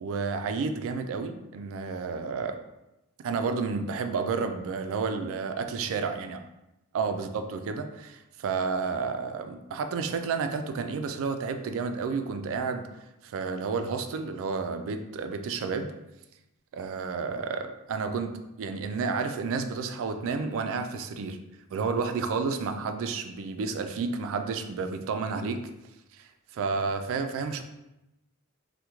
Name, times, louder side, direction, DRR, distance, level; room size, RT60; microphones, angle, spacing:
voice 1, 0.0-2.6 3.2-6.4 6.9-12.9 13.2-15.9 16.7-18.3 18.6-21.4 21.7-25.6 26.2-26.3 26.5-27.6, right 4 dB, 65° right, 7 dB, 0.3 m, -31 dB
3.5 x 2.1 x 2.9 m, 0.93 s
head